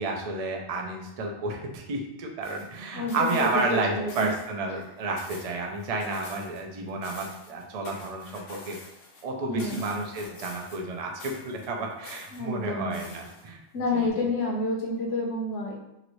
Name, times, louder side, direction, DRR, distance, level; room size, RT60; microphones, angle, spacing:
voice 1, 0.0-8.8 9.2-13.6 13.9-14.3, right 2 dB, 60° right, 1 dB, 0.4 m, -31 dB
sound 1, 2.4-3.8 4.1-4.5 4.8-6.6 6.9-9.2 9.6-10.9 11.2-12.4 12.9-13.7 14.1-14.2, left 3 dB, 85° left, 1.1 m, -47 dB
voice 2, 2.9-4.3 9.5-9.8 12.3-12.9 13.7-15.7, left 2 dB, 60° left, 0 dB, 0.9 m, -29 dB
2.9 x 2.5 x 3.0 m, 0.88 s
omnidirectional pair, 1.3 m